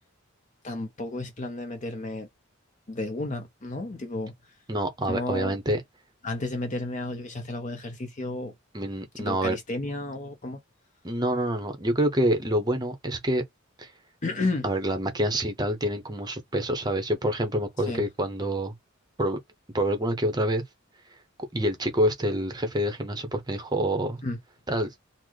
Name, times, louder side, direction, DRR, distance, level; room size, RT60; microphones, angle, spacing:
voice 1, 0.6-2.3 2.9-4.3 5.1-5.5 6.2-8.5 9.2-10.6 14.2-14.6 17.9-18.1 24.2-24.4, left 2 dB, 35° left, 0.6 m, -32 dB
voice 2, 4.7-5.8 8.7-9.6 11.0-13.4 13.8-13.9 14.6-18.7 19.2-19.4 19.7-20.6 21.5-24.2 24.7-24.9, right 1 dB, 20° right, 0.7 m, -27 dB
3.9 x 2.1 x 3.1 m
head